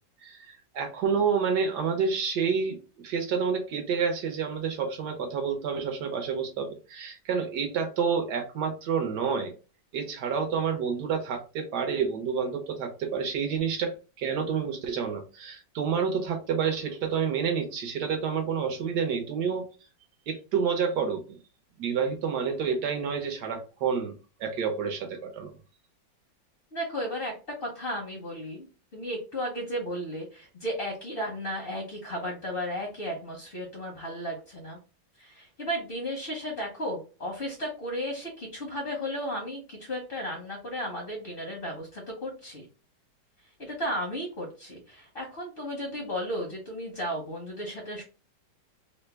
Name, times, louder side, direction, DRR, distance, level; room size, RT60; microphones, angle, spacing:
voice 1, 0.2-9.5 9.9-19.7 20.3-21.4 21.8-25.5, right 6 dB, 70° right, 5 dB, 1.2 m, -29 dB
voice 2, 26.7-28.7 28.9-34.8 35.2-42.6 43.6-48.0, equal, 50° left, 0 dB, 0.7 m, -34 dB
3.2 x 2.1 x 3.2 m, 0.33 s
omnidirectional pair, 2.0 m